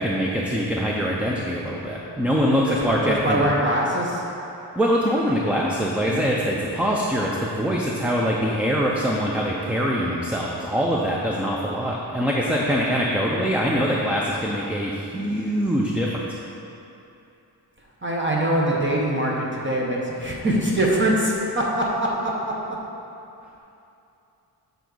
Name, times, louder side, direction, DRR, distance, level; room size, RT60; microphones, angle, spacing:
voice 1, 0.0-3.4 4.8-16.3, equal, 5° right, -3 dB, 0.3 m, -23 dB
voice 2, 2.7-4.2 6.0-6.3 17.8-22.8, right 1 dB, 30° right, -3 dB, 0.8 m, -23 dB
7.1 x 3.9 x 6.1 m, 2.8 s
wide cardioid pair, 170°, 42 cm